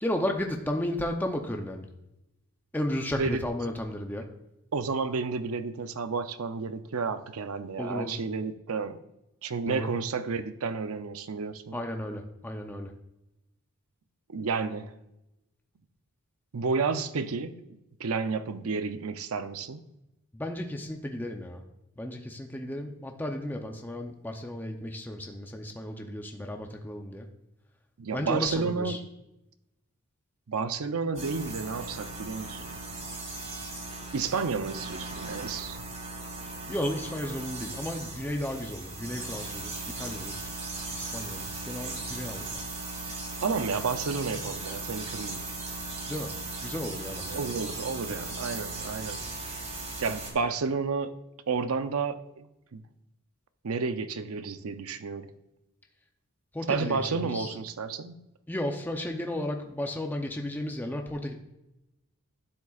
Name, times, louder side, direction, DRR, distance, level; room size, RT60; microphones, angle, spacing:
voice 1, 0.0-1.9 2.7-4.3 7.8-8.2 9.7-9.9 11.7-12.9 20.3-21.6 22.0-27.3 28.1-29.0 36.7-40.4 40.9-42.4 46.1-46.3 46.6-47.4 56.5-57.6 58.5-61.3, left 1 dB, 10° left, 3 dB, 0.6 m, -34 dB
voice 2, 4.7-9.0 9.4-11.8 14.3-14.9 16.5-19.8 28.0-29.0 30.5-32.8 34.1-35.8 43.4-45.4 47.3-49.2 50.0-51.1 51.5-52.8 53.6-55.3 56.7-58.1, right 4 dB, 80° right, 11 dB, 0.6 m, -31 dB
sound 1, 31.1-50.3, right 2 dB, 30° right, 1.9 m, -38 dB
12.0 x 7.2 x 2.4 m, 0.91 s
head